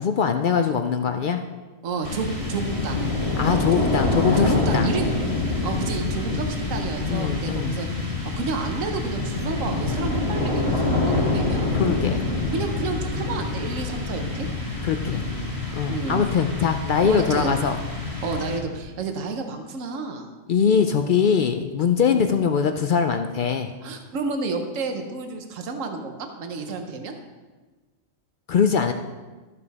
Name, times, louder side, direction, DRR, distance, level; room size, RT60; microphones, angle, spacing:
voice 1, 0.0-1.4 3.4-4.9 7.1-7.7 11.7-12.2 14.8-15.2 15.7-17.8 20.5-23.7 28.5-28.9, left 6 dB, 70° left, 6 dB, 0.4 m, -22 dB
voice 2, 1.8-3.1 3.8-3.9 4.4-5.1 5.6-11.7 12.5-14.5 15.1-15.5 15.9-16.3 17.0-17.6 18.2-20.3 22.0-22.3 23.8-27.1, right 4 dB, 75° right, 4 dB, 1.3 m, -31 dB
sound 1, 2.0-19.0, left 2 dB, 25° left, 1.5 m, -26 dB
13.5 x 5.6 x 4.1 m, 1.3 s
omnidirectional pair, 1.4 m